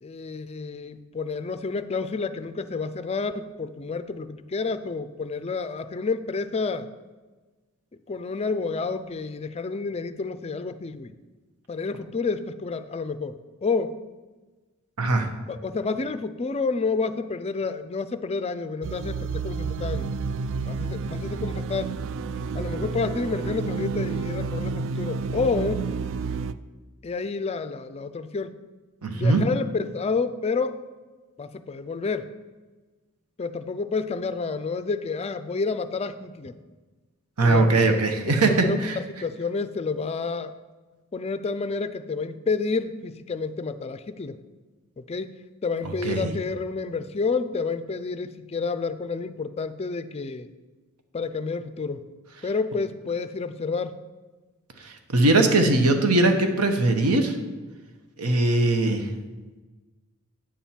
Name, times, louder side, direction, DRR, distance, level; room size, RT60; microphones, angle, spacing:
voice 1, 0.0-6.9 8.1-11.1 11.7-13.9 15.5-20.1 20.7-21.9 22.5-25.9 27.0-28.5 29.2-30.8 31.4-32.3 33.4-36.6 37.4-40.5 41.1-44.4 45.0-45.4 45.6-50.5 51.1-52.0 52.4-53.9, left 4 dB, 25° left, 11 dB, 0.4 m, -29 dB
voice 2, 15.0-15.3 29.0-29.5 37.4-39.0 46.0-46.3 54.8-57.4 58.2-59.1, right 2 dB, 80° right, 5 dB, 1.0 m, -21 dB
sound 1, 18.8-26.5, right 4 dB, 55° right, 0.3 m, -30 dB
9.0 x 4.4 x 7.2 m, 1.3 s
head